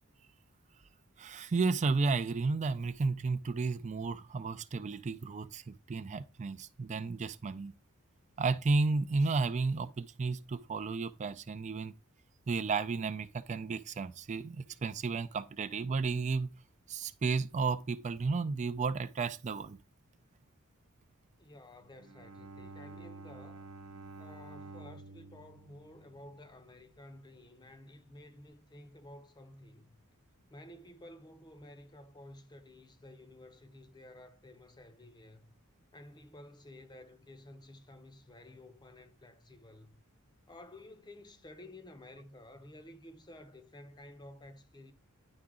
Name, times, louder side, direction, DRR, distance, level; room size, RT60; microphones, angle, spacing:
voice 1, 1.2-7.7 8.4-11.9 12.5-16.5 16.9-19.8, right 4 dB, 35° right, 0.4 m, -33 dB
voice 2, 21.4-23.7 24.2-30.0 30.5-35.5 35.9-40.0 40.5-44.9, left 1 dB, 20° left, 0.7 m, -53 dB
Bowed string instrument, 21.7-27.0, right 3 dB, 75° right, 0.7 m, -50 dB
9.9 x 3.8 x 3.7 m
head